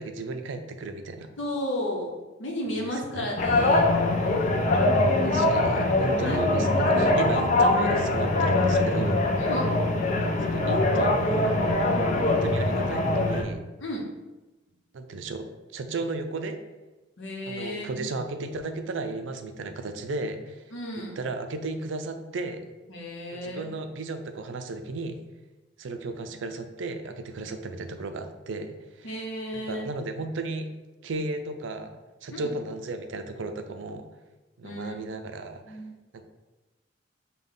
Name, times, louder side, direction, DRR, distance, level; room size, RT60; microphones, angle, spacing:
voice 1, 0.0-1.3 2.8-3.3 4.2-4.5 5.2-9.3 10.4-11.6 12.2-13.6 14.9-15.5 15.7-16.6 17.5-20.7 21.2-22.6 23.3-25.2 25.8-29.2 29.7-30.7 31.0-31.9 32.2-34.1 34.6-35.8 36.1-36.2, right 3 dB, 65° right, 7 dB, 0.4 m, -34 dB
voice 2, 1.4-2.1 2.4-3.9 6.2-6.4 9.4-9.8 13.8-14.0 17.2-18.1 20.7-21.2 22.9-23.7 29.0-29.9 32.3-32.4 34.6-34.9 35.6-36.0, left 1 dB, 65° left, 0 dB, 0.9 m, -33 dB
sound 1, 3.4-13.4, left 2 dB, 40° left, 0.5 m, -23 dB
5.3 x 2.3 x 3.7 m, 1.1 s
head